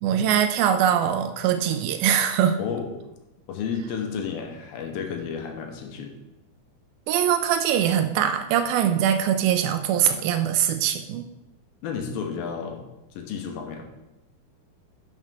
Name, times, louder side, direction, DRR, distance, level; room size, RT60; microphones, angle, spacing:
voice 1, 0.0-2.6 7.1-11.2, right 9 dB, 80° right, 8 dB, 2.2 m, -22 dB
voice 2, 2.6-2.9 3.5-6.2 11.8-12.8 13.1-13.8, left 6 dB, 75° left, 3 dB, 2.6 m, -32 dB
11.0 x 6.5 x 3.7 m, 0.98 s
omnidirectional pair, 4.5 m